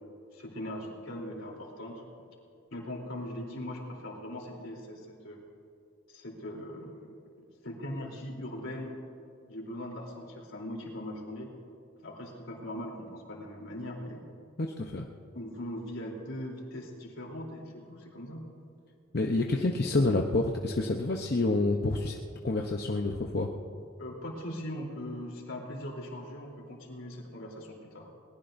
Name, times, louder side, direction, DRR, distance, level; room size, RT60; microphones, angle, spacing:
voice 1, 0.3-2.0 2.7-5.4 6.1-9.0 9.5-11.5 12.0-14.2 15.3-18.4 24.0-28.1, left 1 dB, 75° left, -1 dB, 3.4 m, -40 dB
voice 2, 14.6-15.1 19.1-22.2 22.4-23.5, left 2 dB, 50° left, 1 dB, 0.7 m, -28 dB
21.5 x 19.5 x 2.6 m, 2.4 s
head